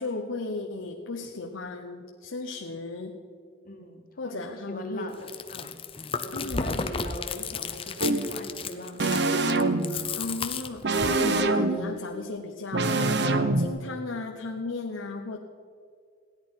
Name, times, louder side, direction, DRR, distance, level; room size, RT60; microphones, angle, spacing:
voice 1, 0.0-3.1 4.2-5.1 6.3-6.7 10.2-15.4, left 3 dB, 90° left, 3 dB, 0.9 m, -35 dB
voice 2, 3.6-9.0, equal, 45° left, 4 dB, 1.6 m, -41 dB
Chewing mastication, 5.1-11.2, left 5 dB, 30° left, 0.7 m, -33 dB
sound 1, 8.0-8.3 9.0-10.0 10.8-11.9 12.7-13.7, right 2 dB, 55° right, 0.8 m, -24 dB
16.0 x 10.5 x 5.7 m, 2.2 s
head